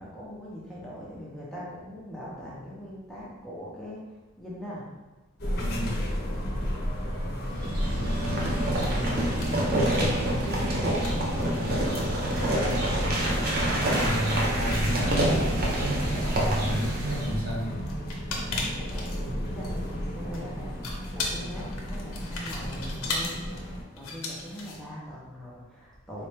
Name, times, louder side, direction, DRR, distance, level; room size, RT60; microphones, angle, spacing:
voice 1, 0.0-4.0 4.4-4.9 9.1-11.7 18.7-20.7 21.1-26.3, equal, ahead, -6 dB, 0.5 m, -41 dB
sound 1, 5.4-23.8, equal, 45° left, 0.7 m, -33 dB
voice 2, 5.6-5.9 13.8-17.7, equal, 75° right, -4 dB, 1.0 m, -31 dB
sound 2, 7.4-17.4, right 1 dB, 45° right, 0.6 m, -27 dB
sound 3, 7.6-7.8 8.1-8.5 8.7-8.9 9.2-10.1 10.4-10.5 10.9-16.2 16.7-24.8, left 3 dB, 85° left, 0.7 m, -38 dB
4.0 x 2.1 x 3.2 m, 1.2 s
head